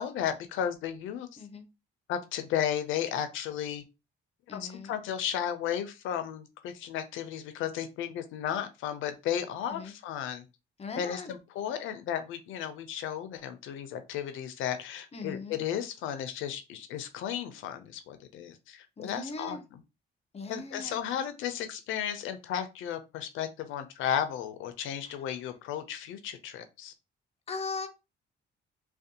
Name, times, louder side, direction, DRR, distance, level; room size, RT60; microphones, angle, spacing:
voice 1, 0.0-1.4 2.1-3.8 4.5-10.4 11.0-19.6 20.5-26.9, left 9 dB, 85° left, 9 dB, 0.4 m, -34 dB
voice 2, 4.5-5.0 9.7-9.9 10.8-11.3 15.1-15.6 19.0-19.6 20.3-21.0 27.5-27.9, left 3 dB, 30° left, 7 dB, 0.5 m, -39 dB
2.5 x 2.2 x 2.6 m, 0.26 s
cardioid pair, 90°, 20 cm